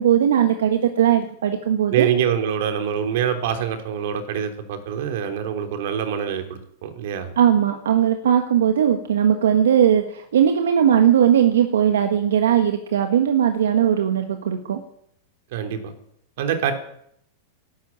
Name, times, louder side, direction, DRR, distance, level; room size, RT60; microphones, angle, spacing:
voice 1, 0.0-2.1 7.4-14.8, right 9 dB, 90° right, 6 dB, 1.6 m, -18 dB
voice 2, 1.9-7.3 15.5-15.9 16.4-16.7, right 8 dB, 65° right, 6 dB, 3.2 m, -25 dB
12.0 x 12.0 x 8.8 m, 0.71 s
hypercardioid pair, 130°, 0 cm